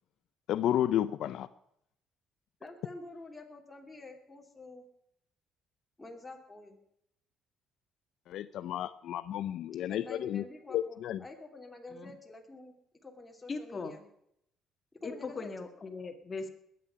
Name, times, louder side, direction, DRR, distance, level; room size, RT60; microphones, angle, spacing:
voice 1, 0.5-1.5 8.3-10.4 10.7-11.2, left 11 dB, 70° left, 12 dB, 0.5 m, -32 dB
voice 2, 2.6-4.9 6.0-6.8 9.9-12.7 13.0-14.0 15.0-15.5, left 2 dB, 10° left, 1 dB, 2.8 m, -48 dB
voice 3, 13.5-13.9 15.0-16.5, left 4 dB, 30° left, 7 dB, 1.7 m, -39 dB
20.5 x 9.4 x 5.6 m, 0.75 s
cardioid pair, 130°, 0 cm